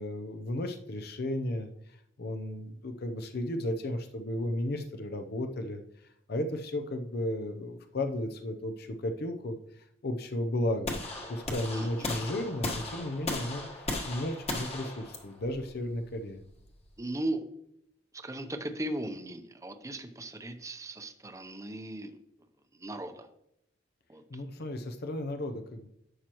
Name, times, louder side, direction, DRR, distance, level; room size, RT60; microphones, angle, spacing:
voice 1, 0.0-11.0 11.3-16.4 24.3-25.9, left 1 dB, 60° left, 7 dB, 0.7 m, -34 dB
sound 1, 10.8-16.9, left 2 dB, 35° left, 1.4 m, -37 dB
voice 2, 17.0-17.4 18.1-22.1 22.8-23.3 24.1-24.2, right 1 dB, 15° right, 8 dB, 0.7 m, -37 dB
11.5 x 7.5 x 3.0 m, 0.78 s
head